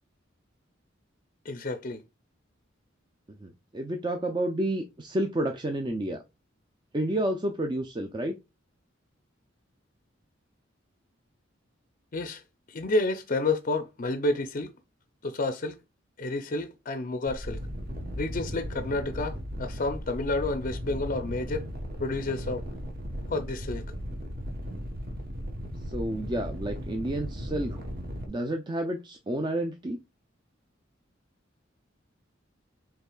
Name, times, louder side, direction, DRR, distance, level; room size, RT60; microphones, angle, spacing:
voice 1, 1.5-2.0 12.1-12.4 12.7-14.7 15.2-15.8 16.2-17.6 18.2-21.6 22.0-22.6 23.3-23.8, left 2 dB, 40° left, 0.5 m, -30 dB
voice 2, 3.4-6.2 6.9-8.3 25.9-27.8 28.3-30.0, right 1 dB, 25° right, 0.5 m, -30 dB
sound 1, 17.3-28.3, equal, 50° right, 1.2 m, -36 dB
5.6 x 3.7 x 2.3 m
head